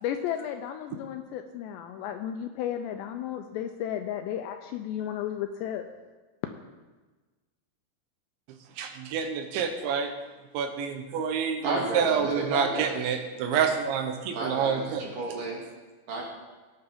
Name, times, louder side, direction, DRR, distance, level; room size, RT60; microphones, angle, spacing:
voice 1, 0.0-5.9, left 10 dB, 85° left, 6 dB, 2.5 m, -33 dB
voice 2, 8.8-10.1 10.5-15.0, right 7 dB, 80° right, 5 dB, 3.2 m, -28 dB
voice 3, 11.6-13.2 14.3-15.6 16.1-16.2, right 2 dB, 55° right, -2 dB, 3.1 m, -32 dB
18.0 x 8.8 x 3.6 m, 1.3 s
omnidirectional pair, 5.4 m